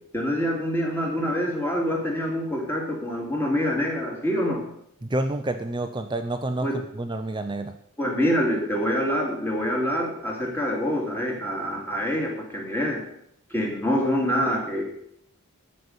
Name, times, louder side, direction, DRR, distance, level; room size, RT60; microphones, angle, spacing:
voice 1, 0.1-4.6 6.6-6.7 8.0-13.0 13.5-14.8, equal, 10° left, -1 dB, 2.7 m, -26 dB
voice 2, 5.1-6.7 7.0-7.7, right 2 dB, 20° right, 7 dB, 0.5 m, -28 dB
13.5 x 5.4 x 8.1 m, 0.73 s
head